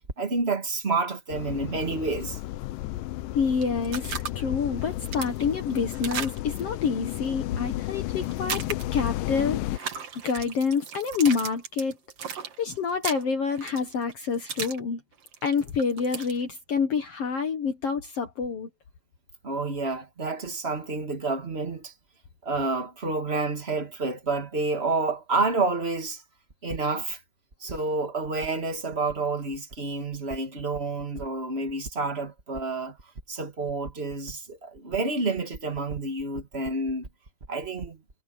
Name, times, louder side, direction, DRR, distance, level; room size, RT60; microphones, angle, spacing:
voice 1, 0.2-2.4 19.4-21.9 22.4-26.2 26.6-27.2 27.6-33.0 33.3-37.1 37.5-38.0, right 3 dB, 30° right, 1.2 m, -29 dB
sound 1, 1.3-9.8, left 16 dB, 90° left, 1.9 m, -33 dB
voice 2, 3.3-10.0 10.2-12.0 12.6-15.0 15.4-18.7, left 5 dB, 65° left, 1.5 m, -27 dB
sound 2, 3.6-4.3 4.8-6.6 8.2-9.1 9.7-14.8 15.1-16.4, right 7 dB, 45° right, 2.4 m, -35 dB
omnidirectional pair, 4.6 m